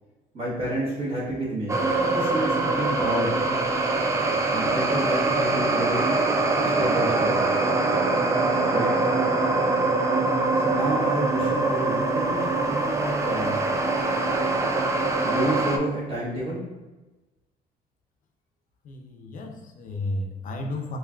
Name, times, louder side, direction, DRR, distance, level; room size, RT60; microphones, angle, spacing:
voice 1, 0.3-3.4 4.5-6.1 6.6-7.5 8.7-8.9 10.5-13.6 15.2-16.6, right 1 dB, 35° right, -7 dB, 1.3 m, -30 dB
sound 1, 1.7-15.8, right 3 dB, 15° right, 0.4 m, -23 dB
voice 2, 18.8-21.0, left 2 dB, 50° left, 4 dB, 0.6 m, -33 dB
4.4 x 2.8 x 2.4 m, 1.1 s
cardioid pair, 110°, 17 cm